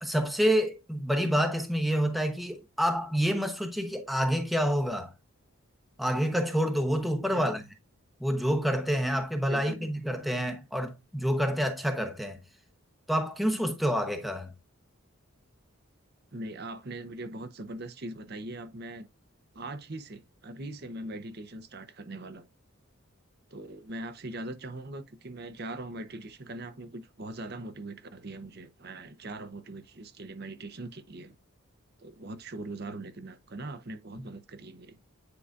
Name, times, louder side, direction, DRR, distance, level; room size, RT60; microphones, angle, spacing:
voice 1, 0.0-5.1 6.0-7.6 8.2-12.4 13.1-14.5 34.2-34.3, equal, ahead, 0.9 m, -28 dB
voice 2, 9.5-9.9 16.3-19.1 19.5-22.5 23.5-31.3 32.0-35.0, right 2 dB, 45° right, 0.8 m, -41 dB
9.7 x 4.8 x 2.4 m
head